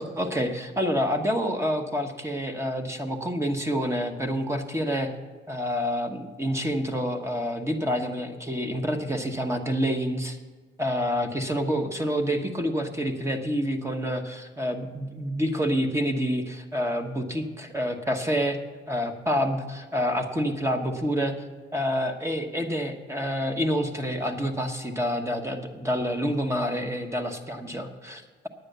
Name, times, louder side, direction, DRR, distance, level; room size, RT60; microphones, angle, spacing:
voice 1, 0.0-5.1 5.5-10.4 10.8-18.6 18.9-21.3 21.7-28.5, equal, 15° right, 4 dB, 1.2 m, -28 dB
9.6 x 9.2 x 6.7 m, 1.4 s
cardioid pair, 90°, 20 cm